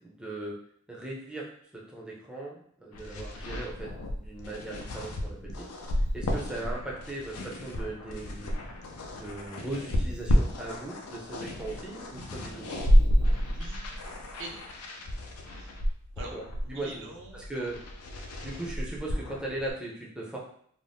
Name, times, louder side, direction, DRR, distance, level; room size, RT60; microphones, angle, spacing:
voice 1, 0.0-0.6 0.9-1.4 1.7-5.7 6.1-12.7 16.3-16.4 16.7-17.0 17.3-17.8 18.4-20.4, right 2 dB, 5° right, -4 dB, 0.5 m, -38 dB
sound 1, 2.9-19.7, equal, 85° left, 0.5 m, -30 dB
voice 2, 13.2-13.9 14.4-14.6 15.4-15.8 16.2-16.4 16.6-17.7, right 2 dB, 60° right, -1 dB, 0.6 m, -45 dB
2.5 x 2.1 x 3.4 m, 0.62 s
head